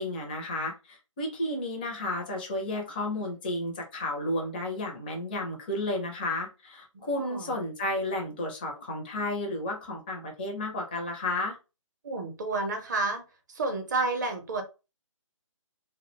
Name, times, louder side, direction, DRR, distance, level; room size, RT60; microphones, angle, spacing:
voice 1, 0.0-11.6, left 1 dB, 15° left, 0 dB, 0.4 m, -32 dB
voice 2, 6.9-7.5 12.0-13.2 13.5-14.6, right 3 dB, 35° right, 5 dB, 0.6 m, -30 dB
2.3 x 2.1 x 2.9 m, 0.30 s
figure-of-eight pair, 145°, 17 cm